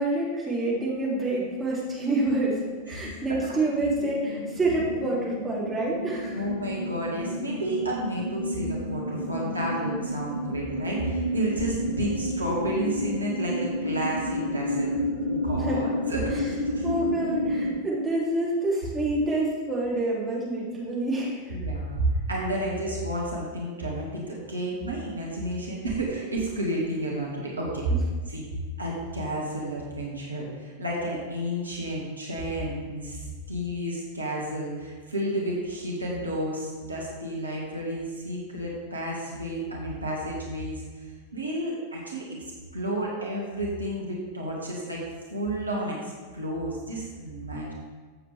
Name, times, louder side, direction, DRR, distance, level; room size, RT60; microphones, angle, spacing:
voice 1, 0.0-2.6 2.9-6.4 9.3-9.6 15.5-15.9 16.3-16.4 16.8-21.5 27.9-28.0, right 2 dB, 10° right, -6 dB, 3.1 m, -27 dB
sound 1, 1.3-1.7 2.0-17.7, left 1 dB, 85° left, 2.7 m, -31 dB
voice 2, 2.9-3.4 6.3-14.9 15.2-16.9 21.5-27.8 28.3-28.4 28.8-42.3 42.7-45.0 45.3-47.7, right 1 dB, 80° right, -3 dB, 2.1 m, -31 dB
14.5 x 7.6 x 3.5 m, 1.4 s
figure-of-eight pair, 90°, 0 cm